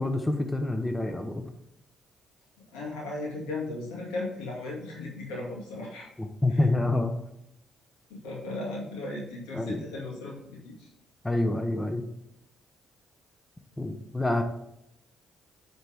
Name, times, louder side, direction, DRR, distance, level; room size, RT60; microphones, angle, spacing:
voice 1, 0.0-1.4 6.2-7.1 9.5-9.8 11.2-12.0 13.8-14.4, left 2 dB, 15° left, 6 dB, 0.9 m, -27 dB
voice 2, 2.7-6.1 6.5-6.6 8.1-10.9, left 2 dB, 85° left, -4 dB, 2.2 m, -36 dB
8.7 x 4.2 x 3.5 m, 0.81 s
supercardioid pair, 55°, 0 cm